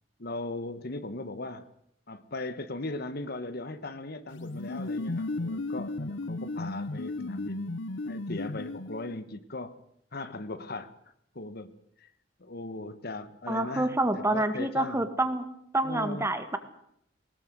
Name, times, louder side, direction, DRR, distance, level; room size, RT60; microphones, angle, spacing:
voice 1, 0.2-1.7 2.1-7.7 8.0-9.8 10.1-10.9 11.3-12.1 12.4-15.1 15.8-16.3, left 2 dB, 55° left, 11 dB, 1.4 m, -38 dB
sound 1, 4.3-9.2, left 2 dB, 85° left, 0.9 m, -35 dB
voice 2, 13.5-15.4 15.7-16.6, right 1 dB, 15° right, 9 dB, 2.0 m, -27 dB
21.5 x 19.0 x 8.1 m, 0.72 s
head